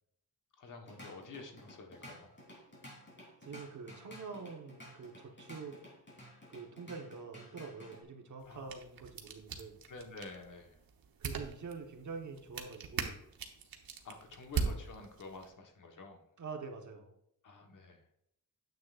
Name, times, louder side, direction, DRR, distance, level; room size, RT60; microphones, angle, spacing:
voice 1, 0.6-2.3 8.4-8.7 9.9-10.7 14.0-16.2 17.4-18.0, left 3 dB, 55° left, 3 dB, 1.4 m, -49 dB
Drum kit / Drum, 0.6-8.0, left 1 dB, 30° left, 3.3 m, -53 dB
voice 2, 3.4-5.8 6.5-9.8 11.2-13.2 16.4-17.1, right 4 dB, 55° right, 3 dB, 1.3 m, -46 dB
sound 1, 8.4-15.5, right 6 dB, 70° right, 1.1 m, -42 dB
9.4 x 7.9 x 2.5 m, 0.76 s
wide cardioid pair, 115°, 36 cm